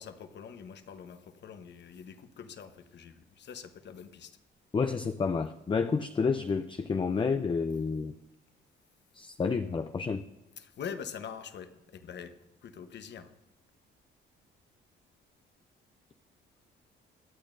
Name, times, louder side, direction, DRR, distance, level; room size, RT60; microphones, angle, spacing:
voice 1, 0.0-4.4 10.6-12.3 12.6-13.3, left 7 dB, 60° left, 8 dB, 1.1 m, -44 dB
voice 2, 4.7-8.1 9.1-10.2, left 5 dB, 25° left, 8 dB, 0.5 m, -30 dB
24.0 x 8.6 x 2.6 m, 0.97 s
cardioid pair, 90°, 20 cm